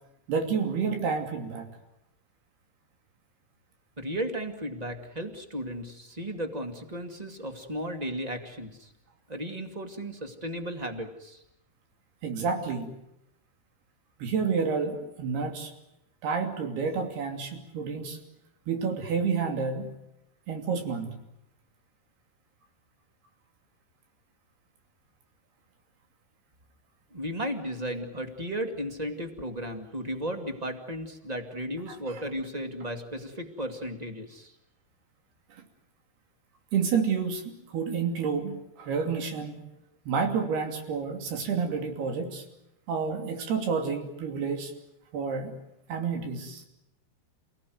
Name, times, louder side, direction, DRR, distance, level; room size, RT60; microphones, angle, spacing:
voice 1, 0.3-1.7 12.2-12.9 14.2-15.7 16.2-18.2 18.7-19.9 20.5-21.2 31.9-32.2 36.7-39.6 40.1-42.4 42.9-44.7 45.1-45.5 45.9-46.6, right 5 dB, 75° right, 5 dB, 4.8 m, -29 dB
voice 2, 4.0-8.9 9.3-11.4 27.1-34.5, equal, 20° right, 5 dB, 1.2 m, -35 dB
29.0 x 17.5 x 9.5 m, 0.86 s
omnidirectional pair, 4.7 m